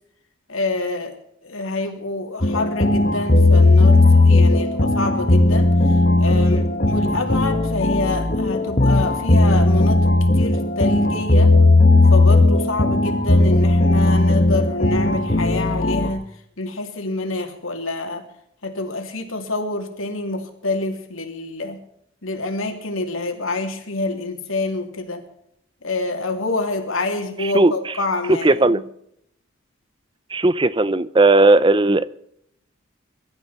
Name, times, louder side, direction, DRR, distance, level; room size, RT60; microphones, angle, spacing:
voice 1, 0.5-1.1 1.4-11.5 12.1-16.3 16.6-18.3 18.6-21.8 22.2-25.2 25.8-28.8, left 2 dB, 85° left, 2.9 m, -27 dB
sound 1, 2.4-16.1, left 2 dB, 40° left, 1.2 m, -16 dB
voice 2, 27.4-27.7 28.4-28.8 30.3-32.1, right 2 dB, 25° right, 0.6 m, -16 dB
23.0 x 13.0 x 4.3 m
head